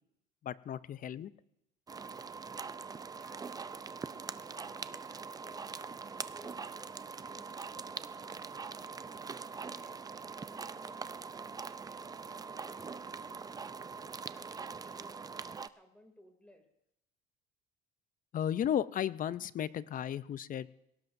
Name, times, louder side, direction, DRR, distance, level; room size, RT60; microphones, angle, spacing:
voice 1, 0.4-1.3 18.3-20.7, left 10 dB, 40° left, 17 dB, 0.5 m, -34 dB
sound 1, 1.9-15.7, right 5 dB, 20° right, 0.4 m, -43 dB
voice 2, 3.2-11.1 11.3-13.5 13.9-16.7, equal, 5° left, 4 dB, 2.6 m, -60 dB
22.0 x 17.5 x 2.6 m, 0.80 s
supercardioid pair, 95°, 21 cm